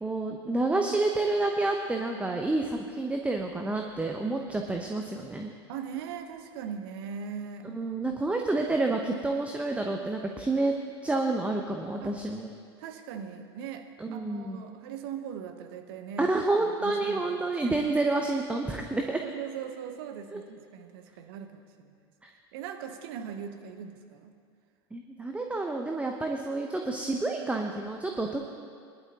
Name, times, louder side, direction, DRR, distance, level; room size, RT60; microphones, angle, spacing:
voice 1, 0.0-5.5 7.6-10.7 11.0-12.5 14.0-14.8 16.2-19.2 20.3-20.4 24.9-28.4, right 2 dB, 10° right, 2 dB, 0.9 m, -29 dB
voice 2, 5.7-7.7 12.0-12.1 12.8-13.8 14.1-17.8 19.2-22.0 22.5-24.3, right 7 dB, 60° right, 6 dB, 1.0 m, -40 dB
20.5 x 11.0 x 2.9 m, 2.2 s
figure-of-eight pair, 80°, 14 cm